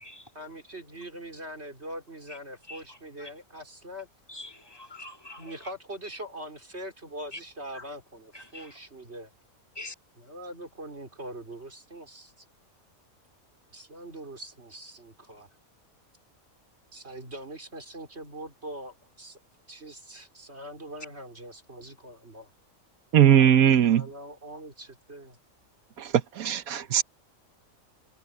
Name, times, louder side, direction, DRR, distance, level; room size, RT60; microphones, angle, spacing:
voice 1, 0.3-4.1 5.4-9.3 10.2-12.3 13.7-15.5 16.9-19.4 19.7-22.5 23.9-25.4, right 1 dB, 50° right, 4.5 m, -42 dB
voice 2, 4.3-5.5 7.3-7.4 7.7-7.8 8.3-8.7 9.8-9.9, left 2 dB, 15° left, 2.4 m, -43 dB
voice 3, 23.1-24.1 26.0-27.0, right 10 dB, 85° right, 1.4 m, -20 dB
omnidirectional pair, 1.5 m